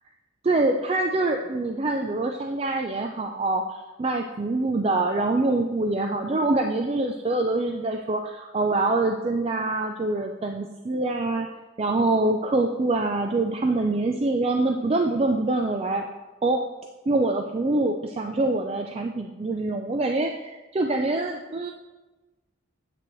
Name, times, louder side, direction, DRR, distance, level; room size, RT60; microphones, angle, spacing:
voice 1, 0.4-11.5 11.8-16.1 16.4-16.6 17.1-21.7, right 2 dB, 30° right, 4 dB, 0.4 m, -25 dB
9.5 x 7.9 x 3.0 m, 1.2 s
head